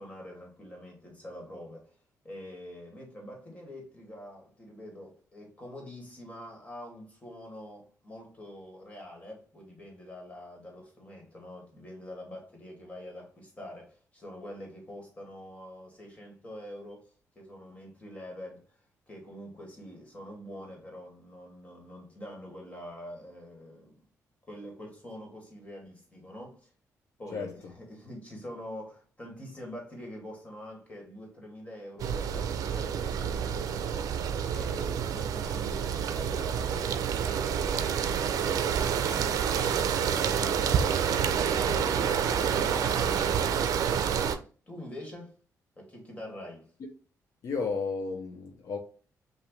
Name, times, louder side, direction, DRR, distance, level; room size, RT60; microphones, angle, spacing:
voice 1, 0.0-1.9 2.2-18.8 19.1-24.0 24.5-26.7 27.2-39.8 40.2-44.3 44.7-45.3 45.8-46.7, left 1 dB, 20° left, 1.9 m, -45 dB
sound 1, 32.0-44.4, right 8 dB, 75° right, 0.5 m, -28 dB
voice 2, 47.4-48.8, left 4 dB, 65° left, 0.7 m, -33 dB
6.0 x 2.6 x 3.1 m
cardioid pair, 135°, 6 cm